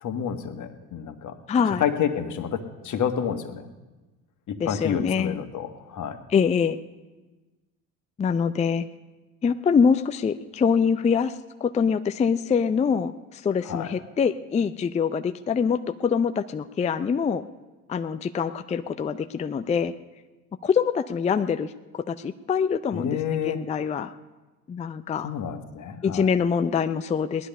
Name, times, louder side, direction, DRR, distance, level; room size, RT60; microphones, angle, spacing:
voice 1, 0.0-1.4 1.8-3.7 4.5-6.2 13.6-13.9 22.9-23.6 25.2-26.3, left 8 dB, 40° left, 7 dB, 1.6 m, -29 dB
voice 2, 1.5-1.8 4.6-5.4 6.3-6.8 8.2-8.8 9.4-11.3 11.6-17.5 17.9-19.9 20.6-24.1 24.7-25.3 26.0-27.5, left 6 dB, 15° left, 10 dB, 0.5 m, -24 dB
18.5 x 12.0 x 5.5 m, 1.2 s
figure-of-eight pair, 65°, 46 cm